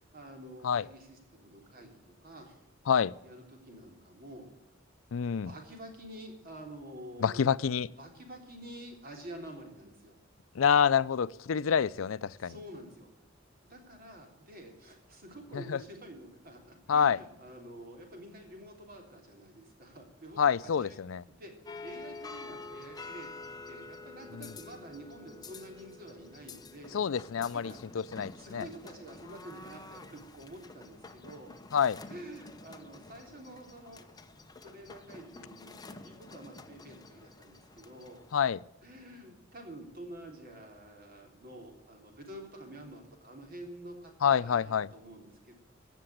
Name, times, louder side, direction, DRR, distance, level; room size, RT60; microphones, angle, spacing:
voice 1, 0.1-2.6 3.2-4.5 5.4-7.5 7.8-10.2 12.4-13.1 13.6-21.0 21.4-21.5 21.8-27.0 27.5-28.0 28.4-31.5 32.1-34.1 34.6-38.2 38.8-45.5, right 1 dB, 50° right, 2 dB, 3.5 m, -48 dB
voice 2, 5.1-5.5 7.2-7.9 10.5-12.5 15.5-15.8 16.9-17.2 20.4-21.2 24.3-24.5 26.9-28.7 31.7-32.0 38.3-38.6 44.2-44.9, left 7 dB, 85° left, 18 dB, 0.5 m, -27 dB
sound 1, 21.7-38.3, left 3 dB, 20° left, 0.9 m, -48 dB
15.5 x 6.8 x 8.6 m, 0.93 s
head